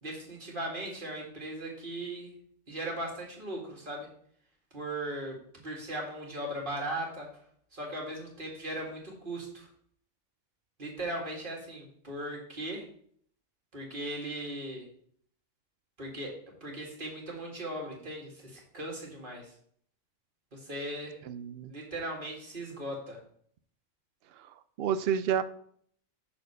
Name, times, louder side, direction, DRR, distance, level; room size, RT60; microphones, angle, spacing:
voice 1, 0.0-2.3 2.7-4.1 4.7-7.3 7.7-9.7 10.8-12.9 13.7-14.9 16.0-19.5 20.5-21.2 21.7-23.2, right 1 dB, 45° right, -1 dB, 2.1 m, -38 dB
voice 2, 21.3-21.7 24.8-25.4, right 8 dB, 65° right, 12 dB, 0.7 m, -29 dB
6.5 x 4.2 x 6.6 m, 0.62 s
omnidirectional pair, 1.3 m